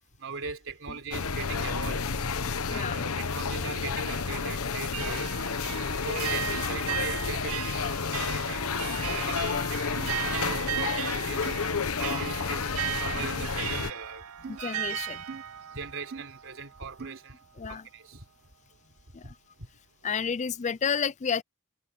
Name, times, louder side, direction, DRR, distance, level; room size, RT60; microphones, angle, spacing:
voice 1, 0.2-2.1 2.4-5.3 5.8-7.8 8.2-8.7 9.0-9.8 10.2-11.6 12.0-14.2 15.7-18.3 19.2-19.3 19.6-19.7, right 4 dB, 65° right, 3.8 m, -40 dB
sound 1, 1.1-13.9, left 5 dB, 85° left, 1.0 m, -31 dB
voice 2, 2.7-3.0 5.7-5.8 13.1-13.2 14.5-15.2 17.6-17.8 19.1-19.3 20.0-21.4, left 6 dB, 35° left, 0.4 m, -31 dB
sound 2, 4.1-17.0, right 11 dB, 90° right, 0.6 m, -36 dB
sound 3, 10.0-10.1 10.8-10.9 11.4-11.6 12.1-12.3 13.2-13.5 14.4-14.6 15.3-15.4 16.1-16.2 17.0-17.2, right 4 dB, 50° right, 0.4 m, -40 dB
head